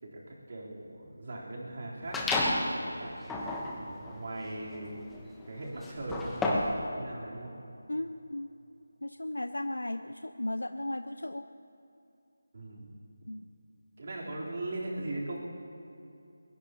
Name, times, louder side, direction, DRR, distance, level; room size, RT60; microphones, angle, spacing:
voice 1, 0.0-5.0 5.5-6.6 6.9-7.5 12.5-13.0 14.0-15.4, right 2 dB, 50° right, -5 dB, 4.1 m, -40 dB
sound 1, 2.1-2.7 3.2-6.8, left 2 dB, 5° left, 1.2 m, -31 dB
voice 2, 7.9-8.5 9.0-11.5 13.3-13.5, left 1 dB, 90° left, 9 dB, 0.5 m, -35 dB
22.0 x 20.0 x 3.1 m, 2.7 s
figure-of-eight pair, 165°, 0 cm